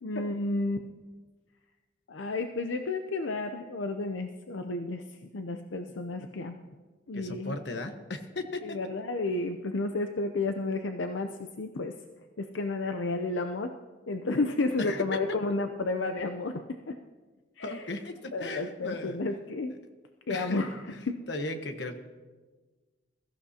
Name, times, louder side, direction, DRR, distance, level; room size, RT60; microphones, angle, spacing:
voice 1, 0.0-0.8 2.1-6.6 7.1-7.6 8.6-11.9 12.4-13.7 14.1-16.6 16.9-17.0 17.6-18.0 18.3-19.7 20.3-21.2, left 2 dB, 85° left, 6 dB, 0.6 m, -32 dB
voice 2, 7.1-8.8 14.8-15.0 17.6-19.2 20.3-20.6 21.3-22.0, left 2 dB, 65° left, 6 dB, 1.2 m, -36 dB
22.0 x 14.0 x 2.8 m, 1.3 s
head